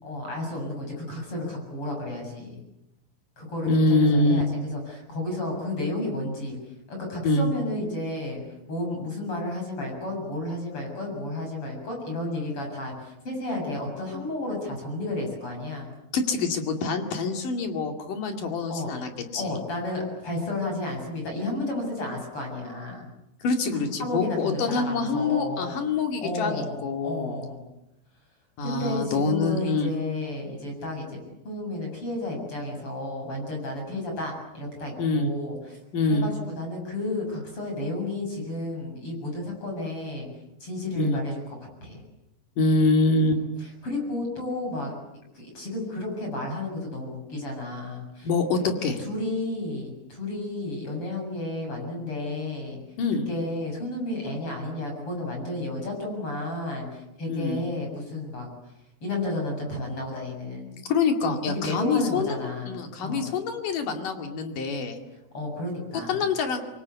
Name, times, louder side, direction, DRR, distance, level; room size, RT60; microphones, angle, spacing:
voice 1, 0.0-2.6 3.4-6.6 6.9-8.4 8.7-15.9 18.7-18.9 19.3-23.1 23.7-25.7 26.2-27.6 28.6-31.2 31.4-35.8 36.0-40.3 40.6-41.4 41.8-42.0 43.4-43.5 43.8-44.9 45.3-48.3 48.6-48.7 49.0-52.8 53.1-58.5 59.0-60.8 61.6-62.7 63.0-63.3 65.3-66.2, left 2 dB, 25° left, 1 dB, 7.8 m, -32 dB
voice 2, 3.7-4.4 7.2-7.5 16.1-19.4 23.4-27.4 28.6-29.9 33.9-34.0 35.0-35.3 35.9-36.3 40.9-41.2 42.6-43.4 48.2-49.0 53.0-53.3 57.3-57.6 60.8-65.0 66.1-66.6, left 3 dB, 50° left, 5 dB, 3.4 m, -25 dB
27.0 x 23.0 x 8.4 m, 0.90 s
omnidirectional pair, 5.8 m